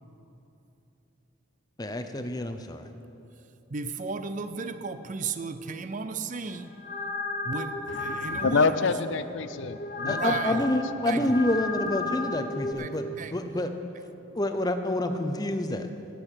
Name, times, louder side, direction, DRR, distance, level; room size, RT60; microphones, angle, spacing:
voice 1, 1.8-2.9 10.1-13.0 13.3-13.7 14.3-15.9, left 1 dB, 20° left, 7 dB, 0.7 m, -28 dB
voice 2, 3.7-6.7 7.4-8.8 10.0-10.6 11.1-11.2 12.8-12.9 13.2-13.4, right 4 dB, 40° right, 11 dB, 0.5 m, -34 dB
sound 1, 6.5-12.7, left 3 dB, 40° left, 1.4 m, -34 dB
voice 3, 7.9-10.6, left 4 dB, 60° left, 12 dB, 0.5 m, -28 dB
19.5 x 7.8 x 6.5 m, 2.9 s
head